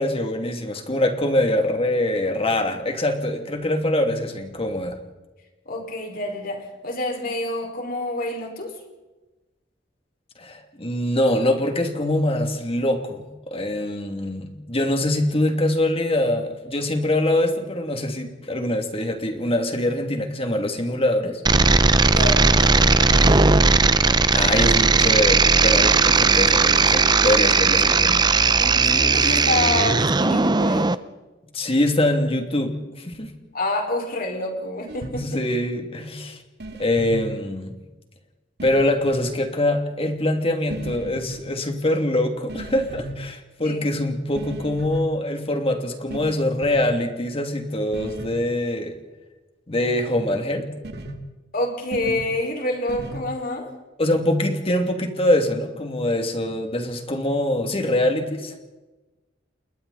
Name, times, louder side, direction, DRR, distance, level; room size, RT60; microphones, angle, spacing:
voice 1, 0.0-5.0 10.4-13.2 13.5-21.4 24.3-28.2 31.5-33.3 35.1-36.4 36.8-37.7 38.6-49.0 49.7-50.7 54.0-58.5, left 1 dB, 30° left, 5 dB, 2.7 m, -23 dB
voice 2, 5.7-8.7 22.1-23.7 24.0-24.2 28.6-30.9 33.5-35.4 43.6-43.8 51.5-53.7, left 2 dB, 50° left, 2 dB, 5.3 m, -28 dB
sound 1, 21.4-30.9, right 4 dB, 25° right, 0.7 m, -17 dB
sound 2, 34.9-35.2 36.6-37.2 38.6-39.3 40.7-41.4 42.5-43.2 44.4-45.0 46.1-46.3 46.6-46.9 47.9-48.4 50.8-51.1 51.9-52.2 52.9-53.2, right 1 dB, 60° right, 2.4 m, -34 dB
30.0 x 21.0 x 4.2 m, 1.1 s
head